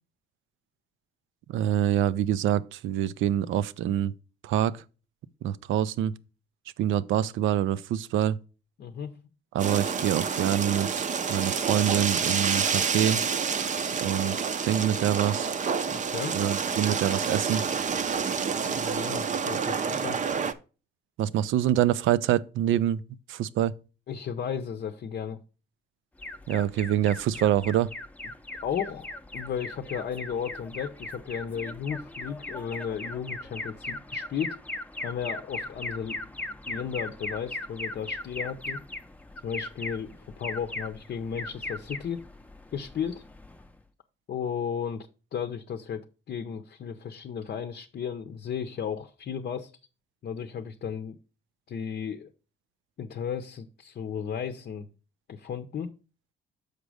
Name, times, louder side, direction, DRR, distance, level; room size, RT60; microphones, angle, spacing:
voice 1, 1.5-4.1 4.4-4.8 5.4-6.1 6.8-8.4 9.5-13.2 14.0-15.5 16.3-17.6 21.2-23.0 23.3-23.7 26.5-27.9, right 11 dB, 80° right, 0.5 m, -26 dB
voice 2, 8.8-9.1 15.9-16.4 18.6-20.2 24.1-25.4 28.6-34.6 35.0-36.3 36.7-38.8 39.4-42.3 42.7-43.2 44.3-49.7 50.2-51.2 51.7-52.3 53.0-54.9 55.3-55.9, left 7 dB, 55° left, 0.6 m, -34 dB
sound 1, 9.6-20.5, right 6 dB, 40° right, 0.6 m, -28 dB
Alarm, 26.2-43.8, left 2 dB, 5° left, 0.6 m, -39 dB
6.7 x 5.1 x 4.8 m
cardioid pair, 90°, 20 cm